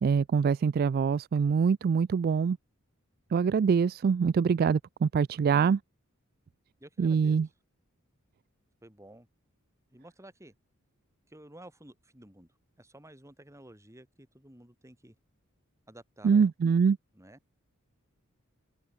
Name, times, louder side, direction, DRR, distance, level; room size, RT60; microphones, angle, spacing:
voice 1, 0.0-2.6 3.3-5.8 7.0-7.5 16.2-17.0, right 6 dB, 45° right, 0.3 m, -24 dB
voice 2, 6.8-7.4 8.8-9.3 9.9-10.5 11.3-15.2 15.9-16.5 17.1-17.4, right 1 dB, 15° right, 4.8 m, -52 dB
head